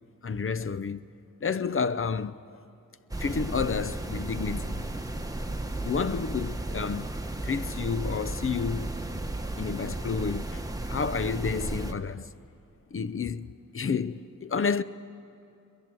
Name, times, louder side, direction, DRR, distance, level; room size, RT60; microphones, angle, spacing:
voice 1, 0.2-1.0 1.4-2.4 3.2-4.9 5.8-7.2 7.4-8.9 9.6-10.6 10.9-12.3 12.9-13.5 13.7-14.8, left 5 dB, 40° left, 0.6 m, -30 dB
sound 1, 3.1-11.9, right 2 dB, 10° right, 1.2 m, -34 dB
22.0 x 21.0 x 7.6 m
wide cardioid pair, 85°, 34 cm